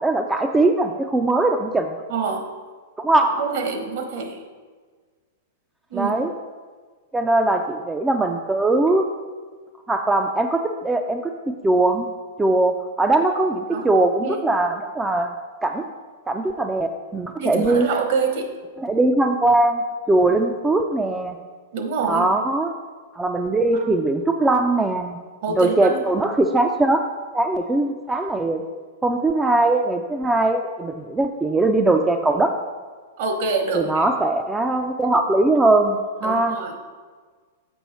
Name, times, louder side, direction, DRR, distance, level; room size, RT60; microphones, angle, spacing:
voice 1, 0.0-2.0 3.0-3.5 5.9-6.3 7.1-9.0 9.9-12.1 12.4-15.3 15.6-15.8 16.3-17.9 18.8-19.8 20.1-21.4 22.0-22.7 23.2-25.2 25.5-27.0 27.3-28.6 29.0-32.5 33.7-36.0 36.2-36.6, right 2 dB, 10° right, 5 dB, 0.4 m, -20 dB
voice 2, 2.1-2.5 3.4-4.4 5.9-6.1 13.7-13.9 14.2-14.4 17.4-18.5 21.7-22.3 23.8-23.9 25.4-26.0 33.2-34.0 36.2-36.7, right 4 dB, 60° right, 5 dB, 1.1 m, -26 dB
7.1 x 5.3 x 4.2 m, 1.5 s
hypercardioid pair, 140°, 0 cm